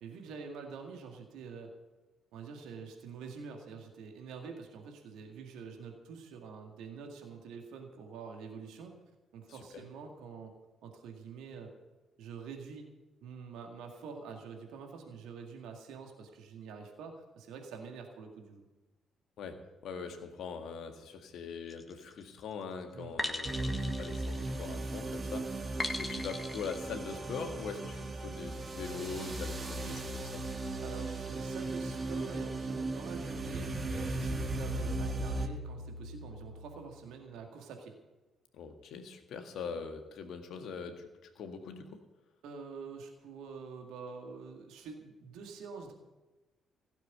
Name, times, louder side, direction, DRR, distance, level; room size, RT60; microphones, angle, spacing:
voice 1, 0.0-1.7 2.3-8.9 9.3-10.5 10.8-11.7 12.2-12.9 13.2-18.6 22.9-23.1 30.8-37.9 42.4-45.9, right 5 dB, 70° right, 3 dB, 2.0 m, -46 dB
voice 2, 9.5-9.8 19.4-30.4 38.5-41.1 41.4-42.0, left 5 dB, 60° left, 5 dB, 1.8 m, -42 dB
sound 1, 21.7-22.1 23.2-24.9 25.8-26.8, left 2 dB, 20° left, 1.6 m, -38 dB
sound 2, 23.4-35.5, right 2 dB, 35° right, 1.7 m, -37 dB
sound 3, 28.5-32.3 32.7-37.3, left 1 dB, 85° left, 0.4 m, -47 dB
16.0 x 7.3 x 9.4 m, 1.1 s
hypercardioid pair, 45°, 0 cm